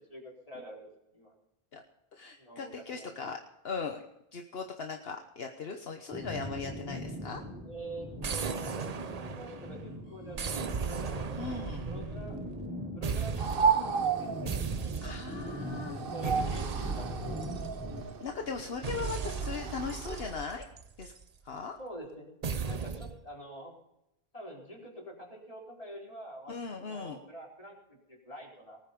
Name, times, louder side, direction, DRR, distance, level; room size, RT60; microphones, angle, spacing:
voice 1, 0.1-1.3 2.4-3.1 7.6-8.8 9.1-12.4 12.9-15.1 15.8-17.5 21.8-22.3 22.6-23.7 24.3-28.8, right 1 dB, 35° left, -2 dB, 4.4 m, -46 dB
voice 2, 2.1-3.4 3.6-4.0 4.3-7.4 11.3-11.9 15.0-16.0 18.2-20.7 21.0-21.1 21.4-21.8 26.5-27.2, left 5 dB, 70° left, 4 dB, 1.3 m, -38 dB
sound 1, 6.1-18.0, equal, 10° right, 5.3 m, -42 dB
sound 2, 8.2-9.8 10.4-12.7 13.0-13.9 14.5-15.5 16.2-18.1 18.8-21.2 22.4-23.2, right 5 dB, 40° right, 0.8 m, -36 dB
sound 3, 13.4-20.3, right 6 dB, 65° right, 1.2 m, -33 dB
19.5 x 9.5 x 5.2 m, 0.82 s
omnidirectional pair, 1.0 m